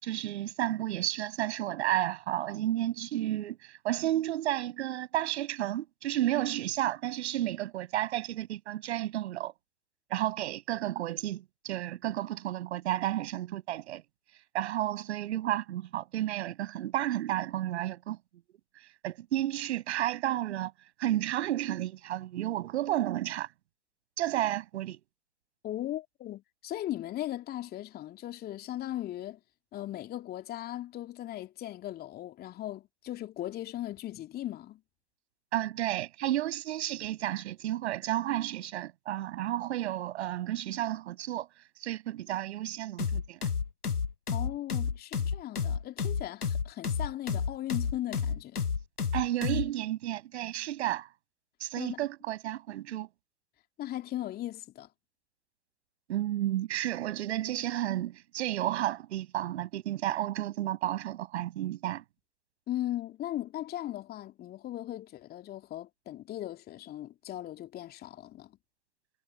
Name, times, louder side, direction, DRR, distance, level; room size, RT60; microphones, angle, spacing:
voice 1, 0.0-9.5 10.1-14.0 14.5-18.2 19.0-20.7 21.0-23.5 24.2-25.0 35.5-41.5 41.8-43.4 49.1-51.1 51.6-53.1 56.1-62.0, right 13 dB, 50° right, 6.2 m, -32 dB
voice 2, 25.6-29.4 29.7-34.8 44.3-48.6 51.8-52.0 53.8-54.9 62.7-68.6, left 13 dB, 20° left, 2.6 m, -38 dB
sound 1, 43.0-49.7, left 6 dB, 90° left, 0.8 m, -31 dB
figure-of-eight pair, 110°, 44 cm